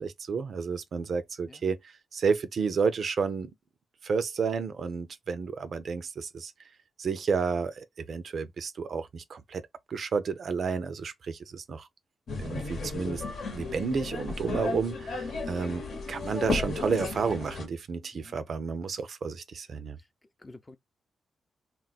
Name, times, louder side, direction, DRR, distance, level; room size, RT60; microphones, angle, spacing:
voice 1, 0.0-1.8 2.1-3.5 4.0-6.5 7.0-9.6 9.9-11.9 12.4-13.2 13.5-20.0, right 5 dB, 65° right, 0.4 m, -31 dB
sound 1, 12.3-17.7, left 3 dB, 70° left, 0.9 m, -34 dB
voice 2, 20.4-20.8, left 2 dB, 30° left, 0.5 m, -50 dB
2.2 x 2.1 x 3.9 m
supercardioid pair, 50°, 0 cm